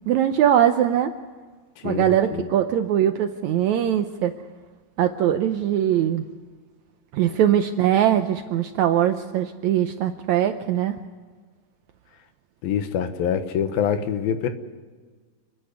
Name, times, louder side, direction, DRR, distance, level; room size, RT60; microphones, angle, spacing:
voice 1, 0.1-1.1 1.8-4.3 5.0-6.2 7.1-11.0, right 10 dB, 75° right, 8 dB, 1.7 m, -21 dB
voice 2, 12.6-14.5, left 8 dB, 85° left, 9 dB, 3.1 m, -25 dB
29.0 x 10.5 x 9.6 m, 1.5 s
omnidirectional pair, 4.1 m